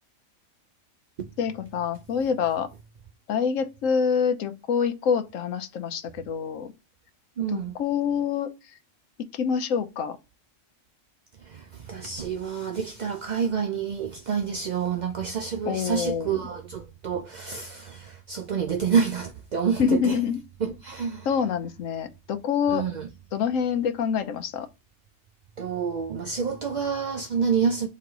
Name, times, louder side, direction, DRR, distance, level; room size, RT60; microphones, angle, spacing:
voice 1, 1.4-2.7 3.3-6.7 7.5-8.5 9.2-10.2 15.7-16.4 19.8-20.4 21.3-22.9 23.3-24.7, left 7 dB, 75° left, 1.1 m, -26 dB
voice 2, 7.4-7.8 11.4-20.2 20.6-21.3 22.7-23.1 25.6-27.9, right 6 dB, 75° right, 0.4 m, -28 dB
4.2 x 3.2 x 4.0 m
omnidirectional pair, 1.4 m